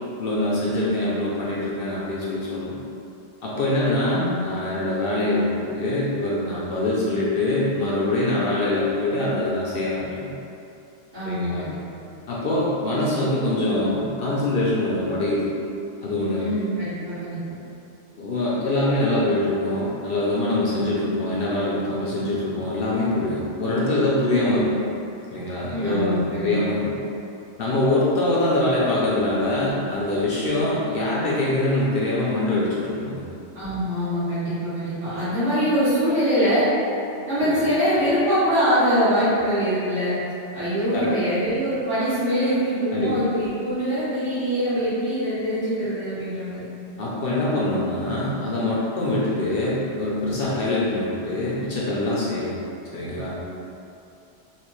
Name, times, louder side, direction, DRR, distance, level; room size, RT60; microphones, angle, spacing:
voice 1, 0.2-2.7 3.4-10.3 11.2-11.7 12.3-15.5 16.0-16.5 18.2-24.7 25.3-26.8 27.6-33.2 37.4-37.5 40.9-41.2 42.9-43.2 47.0-52.5 52.9-53.4, left 1 dB, 60° left, -6 dB, 0.7 m, -24 dB
voice 2, 11.1-12.0 16.4-17.6 25.7-26.5 33.5-36.7 37.3-40.2 40.5-46.7, equal, 90° right, -17 dB, 1.8 m, -23 dB
3.2 x 2.9 x 3.0 m, 2.7 s
omnidirectional pair, 1.2 m